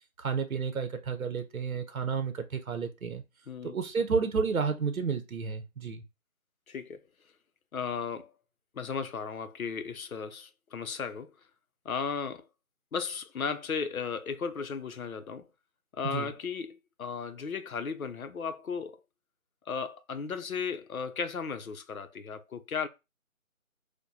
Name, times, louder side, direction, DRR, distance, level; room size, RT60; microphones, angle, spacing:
voice 1, 0.2-3.2 3.6-6.0 16.0-16.3, right 5 dB, 75° right, 0.7 m, -31 dB
voice 2, 3.5-3.8 6.7-7.0 7.7-8.4 8.7-11.3 11.8-12.5 12.9-15.5 15.9-19.0 19.7-22.9, left 5 dB, 75° left, 0.7 m, -35 dB
4.7 x 2.2 x 2.6 m
figure-of-eight pair, 175°, 42 cm